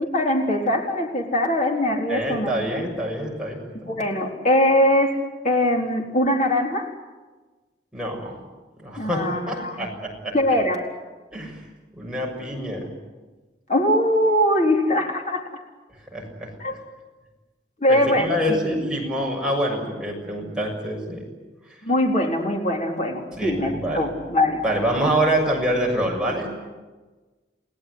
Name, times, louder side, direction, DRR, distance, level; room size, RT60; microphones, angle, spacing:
voice 1, 0.0-2.8 3.9-5.2 5.4-6.9 9.0-9.8 10.3-10.9 13.7-15.4 16.6-16.7 17.8-18.6 21.8-24.6, left 1 dB, 40° left, 1 dB, 4.1 m, -22 dB
voice 2, 2.1-4.0 7.9-8.4 8.8-10.3 11.3-11.6 11.9-12.9 16.1-16.5 17.9-21.2 23.3-24.1 24.6-26.5, equal, 5° right, -2 dB, 6.6 m, -26 dB
29.5 x 17.5 x 9.7 m, 1.3 s
head